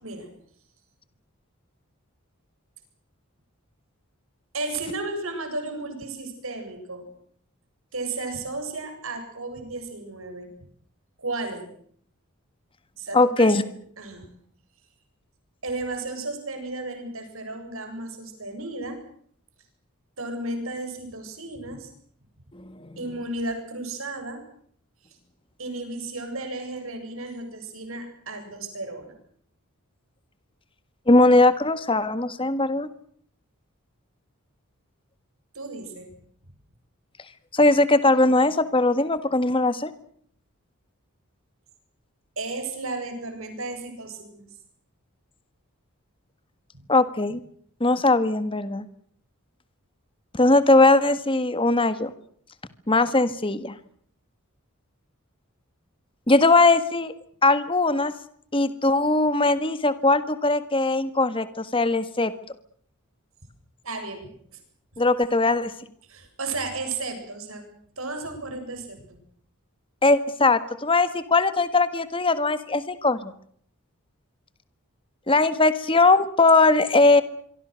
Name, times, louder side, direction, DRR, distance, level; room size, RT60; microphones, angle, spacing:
voice 1, 4.5-7.1 7.9-10.5 11.2-11.7 13.0-13.5 14.0-14.3 15.6-19.0 20.2-21.9 23.0-24.4 25.6-29.1 35.5-36.1 42.4-44.4 63.8-64.6 66.1-67.6 68.0-69.2, right 2 dB, 65° right, 6 dB, 7.8 m, -33 dB
voice 2, 13.1-13.6 22.5-22.9 31.1-32.9 37.5-39.9 46.9-47.4 47.8-48.8 50.3-52.1 52.9-53.7 56.3-57.1 57.4-58.1 58.5-62.3 65.0-65.7 70.0-73.3 75.3-77.2, left 2 dB, 25° left, 13 dB, 1.6 m, -20 dB
26.0 x 24.0 x 6.5 m, 0.62 s
head